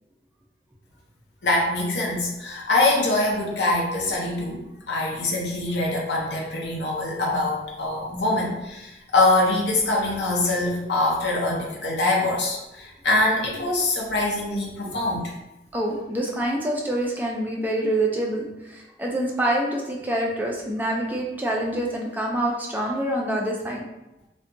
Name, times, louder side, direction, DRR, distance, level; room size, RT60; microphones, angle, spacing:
voice 1, 1.4-4.6 4.9-15.2, left 2 dB, 75° left, -2 dB, 0.6 m, -24 dB
voice 2, 15.7-23.9, right 1 dB, 10° right, -1 dB, 0.3 m, -26 dB
2.6 x 2.2 x 2.5 m, 0.95 s
head